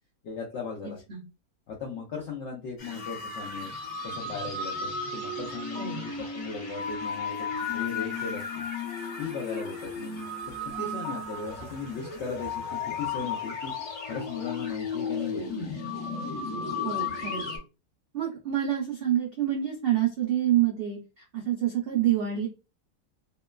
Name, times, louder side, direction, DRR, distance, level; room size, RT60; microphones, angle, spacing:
voice 1, 0.2-1.0 1.7-3.7 4.0-8.4 9.2-10.2 10.8-13.7 14.1-15.7, left 5 dB, 75° left, -1 dB, 0.6 m, -37 dB
voice 2, 0.8-1.2 5.8-6.1 16.8-17.4 18.1-22.5, right 11 dB, 75° right, -1 dB, 0.5 m, -27 dB
sound 1, 2.8-17.6, left 4 dB, 60° left, 1.1 m, -34 dB
2.9 x 2.2 x 2.2 m, 0.30 s
omnidirectional pair, 1.7 m